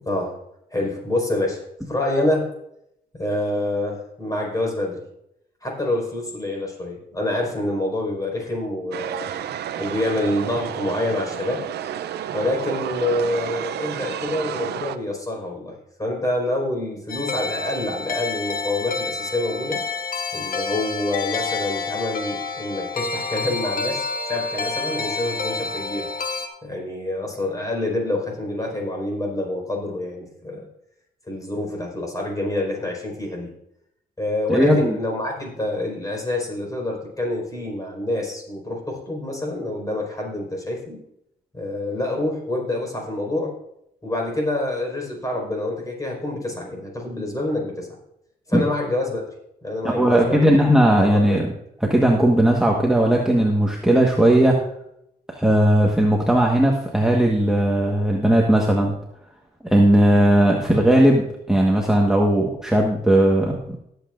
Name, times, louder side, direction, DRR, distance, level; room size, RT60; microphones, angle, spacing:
voice 1, 0.0-0.4 0.7-2.5 3.2-5.0 5.6-9.3 9.8-11.7 12.3-19.8 20.3-26.1 26.6-30.7 31.3-33.5 34.2-41.0 41.5-43.5 44.0-47.9 48.5-49.2 49.6-50.5 50.9-51.4, left 1 dB, 20° left, 0 dB, 4.9 m, -27 dB
sound 1, 8.9-15.0, right 10 dB, 80° right, 0.6 m, -31 dB
sound 2, 17.1-26.5, left 4 dB, 55° left, 1.4 m, -28 dB
voice 2, 34.5-34.9 48.5-48.6 49.8-51.5 51.8-54.6 55.3-58.9 59.6-63.8, right 1 dB, 5° right, -1 dB, 1.4 m, -17 dB
18.5 x 8.0 x 2.6 m, 0.79 s
cardioid pair, 90°, 17 cm